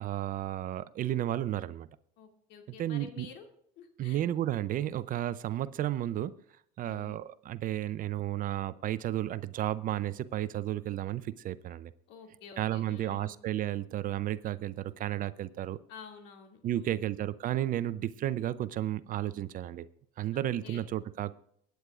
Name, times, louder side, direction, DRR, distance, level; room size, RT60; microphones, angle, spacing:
voice 1, 0.0-1.9 2.8-3.3 4.0-6.4 6.8-11.9 12.6-15.8 16.6-19.9 20.2-21.3, right 12 dB, 45° right, 0.6 m, -33 dB
voice 2, 2.2-3.5 3.8-4.2 6.8-7.2 12.1-13.4 15.9-17.1 20.3-20.9, left 6 dB, 60° left, 2.3 m, -50 dB
23.5 x 9.2 x 2.5 m
hypercardioid pair, 75°, 20 cm